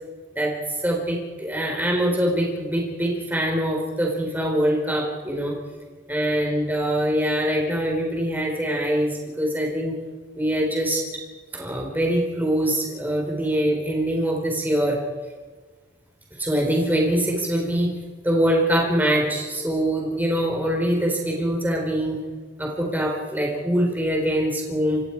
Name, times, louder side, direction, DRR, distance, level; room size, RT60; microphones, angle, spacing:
voice 1, 0.3-5.6 6.1-10.0 10.3-11.2 11.5-15.0 16.4-17.9 18.2-22.2 22.6-25.0, equal, 10° right, -1 dB, 4.4 m, -23 dB
27.5 x 24.5 x 4.8 m, 1.4 s
head